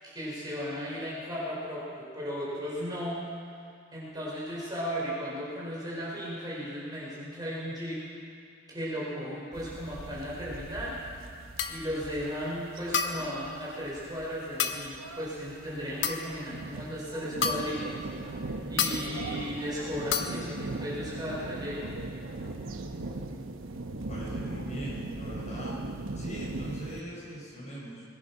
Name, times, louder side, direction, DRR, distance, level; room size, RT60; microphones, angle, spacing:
voice 1, 0.0-3.2 3.9-8.0 8.7-11.0 11.7-18.1 18.4-21.8, equal, 20° right, -7 dB, 5.0 m, -35 dB
sound 1, 9.5-27.0, right 2 dB, 90° right, 1.0 m, -39 dB
sound 2, 11.6-11.9 12.9-13.3 14.6-14.9 16.0-16.4 17.4-17.8 18.8-19.1 20.1-20.4, left 6 dB, 60° left, 0.9 m, -30 dB
voice 2, 23.8-25.8 26.1-28.0, equal, 35° left, -5 dB, 4.8 m, -40 dB
21.5 x 10.5 x 5.7 m, 2.4 s
head